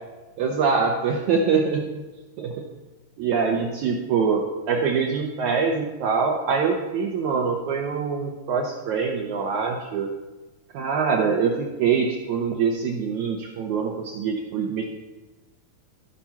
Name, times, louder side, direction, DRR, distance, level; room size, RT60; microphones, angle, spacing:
voice 1, 0.4-1.9 2.4-2.6 3.2-10.1 10.7-14.8, right 5 dB, 70° right, 0 dB, 2.0 m, -24 dB
15.0 x 5.3 x 5.8 m, 1.1 s
omnidirectional pair, 4.1 m